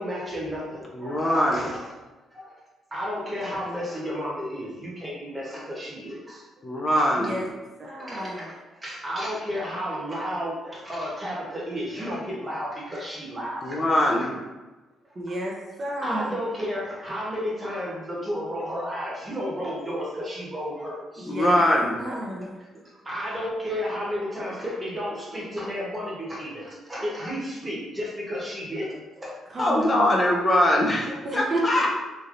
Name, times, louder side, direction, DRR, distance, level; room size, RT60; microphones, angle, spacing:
voice 1, 0.0-1.9 2.3-2.5 2.9-6.4 6.9-7.1 8.0-13.8 14.2-14.3 15.6-21.3 23.0-29.4 30.7-31.2, equal, 20° right, -4 dB, 1.1 m, -32 dB
voice 2, 0.9-1.6 6.6-7.4 13.6-14.3 21.3-22.0 29.6-31.9, left 1 dB, 30° left, -1 dB, 0.5 m, -22 dB
voice 3, 7.8-8.4 15.2-16.4 21.2-21.6 22.0-22.8 29.5-30.4 31.2-31.6, right 1 dB, 40° right, -2 dB, 0.6 m, -31 dB
3.2 x 2.7 x 2.5 m, 1.1 s
cardioid pair, 90°, 0 cm